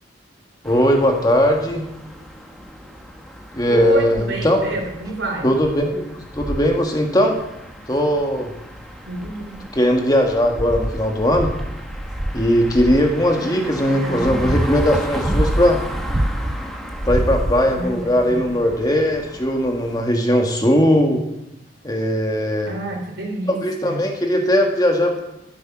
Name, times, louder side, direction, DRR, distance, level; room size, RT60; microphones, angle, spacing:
voice 1, 0.6-1.8 3.5-4.6 5.4-6.1 6.4-7.4 7.9-8.5 9.7-11.5 12.3-15.8 17.1-21.2 21.8-22.7 23.6-25.2, equal, 20° left, 3 dB, 1.6 m, -19 dB
sound 1, 0.6-20.0, equal, ahead, 1.3 m, -37 dB
voice 2, 3.7-5.5 9.0-9.6 13.4-14.5 17.6-18.6 22.7-24.1, right 1 dB, 80° right, 2 dB, 3.6 m, -29 dB
sound 2, 4.2-4.5 5.1-5.2 5.6-5.8 6.3-6.8 8.2-8.3 9.1-9.8 10.3-13.1 13.8-16.6 16.9-17.9 18.7-18.8, right 1 dB, 20° right, 0.7 m, -25 dB
14.0 x 8.8 x 6.0 m, 0.90 s
head